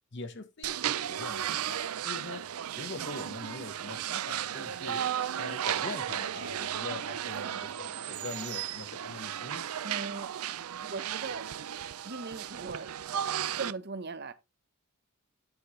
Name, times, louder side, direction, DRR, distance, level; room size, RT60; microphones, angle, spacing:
voice 1, 0.1-2.4 2.7-5.0 5.4-9.7, left 3 dB, 55° left, 1.1 m, -43 dB
sound 1, 0.6-13.7, right 10 dB, 90° right, 0.5 m, -35 dB
voice 2, 9.8-10.3 10.8-11.4 12.0-12.9 13.5-14.3, right 4 dB, 50° right, 0.8 m, -38 dB
9.1 x 5.9 x 3.2 m
head